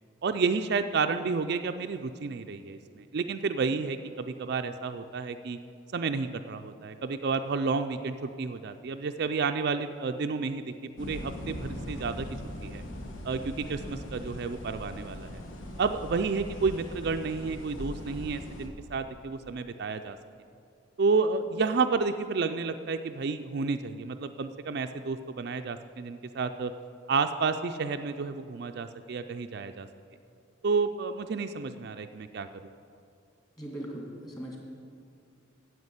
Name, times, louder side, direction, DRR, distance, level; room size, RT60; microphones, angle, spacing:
voice 1, 0.2-5.6 5.9-12.3 12.6-12.8 13.2-15.4 15.8-20.2 21.0-26.7 27.1-29.9 30.6-32.5, right 4 dB, 50° right, 8 dB, 0.4 m, -30 dB
sound 1, 11.0-18.7, left 1 dB, 75° left, 1.3 m, -40 dB
voice 2, 33.6-34.6, right 1 dB, 20° left, -1 dB, 2.1 m, -39 dB
9.5 x 8.0 x 8.1 m, 2.4 s
head